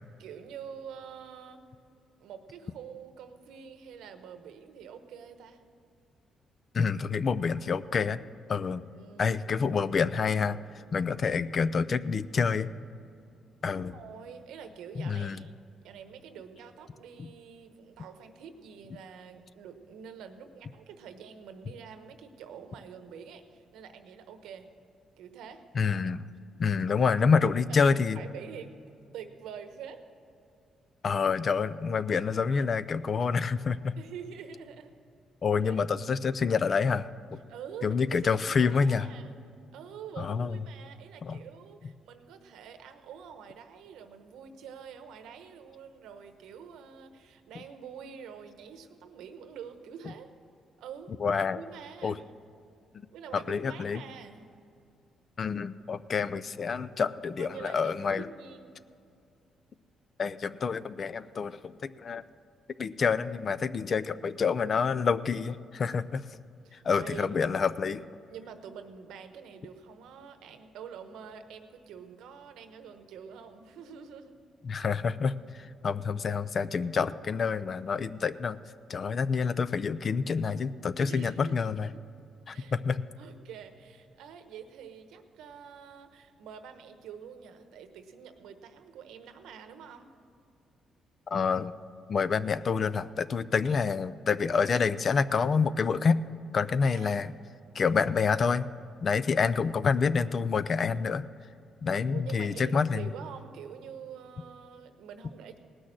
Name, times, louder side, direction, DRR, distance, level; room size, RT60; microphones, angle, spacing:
voice 1, 0.2-1.6 2.2-5.6 8.9-9.6 13.7-15.6 15.8-24.7 25.2-25.6 27.4-27.5 27.8-28.7 29.1-30.0 34.0-34.9 35.6-35.8 37.5-39.4 39.7-50.3 50.8-51.1 51.5-52.2 53.1-54.5 57.4-58.8 66.6-67.3 68.3-74.3 81.1-82.0 82.5-82.7 83.2-90.1 96.8-97.3 102.1-105.6, right 7 dB, 85° right, 8 dB, 1.0 m, -46 dB
voice 2, 6.7-8.2 8.5-8.9 9.2-10.6 10.9-12.7 13.6-13.9 15.0-15.4 17.2-17.3 25.8-26.2 26.6-28.2 31.0-33.9 35.4-37.4 37.8-39.1 40.2-40.6 41.2-41.4 51.2-51.6 52.0-52.2 53.5-54.0 55.4-58.3 60.2-62.2 62.8-66.2 66.8-68.0 74.6-78.6 78.9-81.9 82.5-83.1 91.3-91.7 92.1-96.2 96.5-97.3 97.7-98.7 99.0-101.3 101.8-103.1, left 5 dB, 45° left, 15 dB, 0.4 m, -27 dB
18.0 x 6.3 x 7.5 m, 2.5 s
cardioid pair, 90°, 0 cm